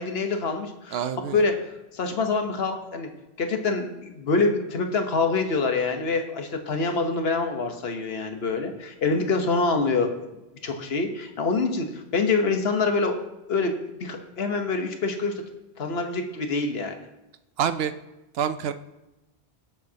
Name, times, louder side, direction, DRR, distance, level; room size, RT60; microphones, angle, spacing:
voice 1, 0.0-1.0 1.3-1.5 1.9-3.1 3.4-10.1 10.6-13.1 13.5-15.3 15.8-16.9, left 3 dB, 70° left, 5 dB, 1.3 m, -25 dB
voice 2, 0.9-1.4 17.6-17.9 18.3-18.7, right 8 dB, 70° right, 11 dB, 0.8 m, -26 dB
19.0 x 7.0 x 2.8 m, 0.99 s
omnidirectional pair, 1.1 m